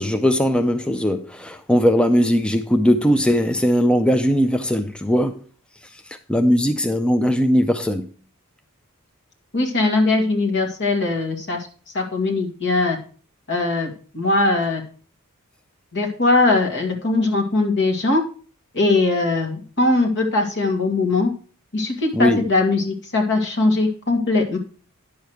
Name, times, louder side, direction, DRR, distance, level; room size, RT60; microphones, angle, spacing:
voice 1, 0.0-5.4 5.8-8.1 22.1-22.4, equal, 5° left, 0.4 m, -19 dB
voice 2, 9.5-11.7 11.9-13.0 13.5-14.8 15.9-18.2 18.7-21.3 21.7-24.6, left 2 dB, 55° left, 2.2 m, -20 dB
10.0 x 6.4 x 4.7 m
head